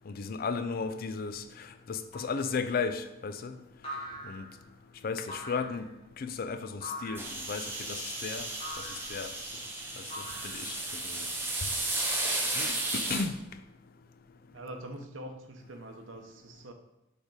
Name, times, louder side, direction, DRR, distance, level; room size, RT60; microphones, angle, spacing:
voice 1, 0.1-3.5 4.2-4.5 5.0-5.9 6.2-8.5 8.8-9.3 10.0-11.2 12.5-13.4, left 5 dB, 50° left, 10 dB, 0.4 m, -35 dB
sound 1, 2.1-2.5 3.8-4.6 5.3-5.9 6.8-7.3 8.6-9.1 10.1-10.9, equal, 30° left, 1.4 m, -42 dB
sound 2, 7.1-13.2, right 2 dB, 10° right, 0.9 m, -34 dB
voice 2, 14.5-16.7, right 1 dB, 90° right, 6 dB, 0.8 m, -44 dB
6.4 x 3.5 x 4.7 m, 0.93 s
head